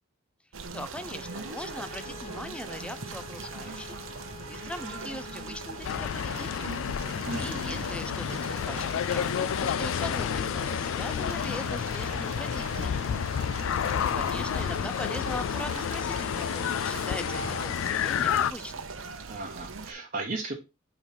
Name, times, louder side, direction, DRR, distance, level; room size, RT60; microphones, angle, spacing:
sound 1, 0.5-19.9, right 4 dB, 75° right, 0.9 m, -40 dB
voice 1, 0.7-6.8 7.3-13.2 14.0-18.8, left 1 dB, 5° left, 11 dB, 0.5 m, -41 dB
Bowed string instrument, 1.1-6.3, left 8 dB, 40° left, 1.2 m, -48 dB
sound 2, 5.8-18.5, left 8 dB, 75° left, 0.3 m, -30 dB
voice 2, 7.3-7.9 19.3-20.5, right 3 dB, 40° right, 0 dB, 1.0 m, -35 dB
4.8 x 4.0 x 5.7 m, 0.26 s
head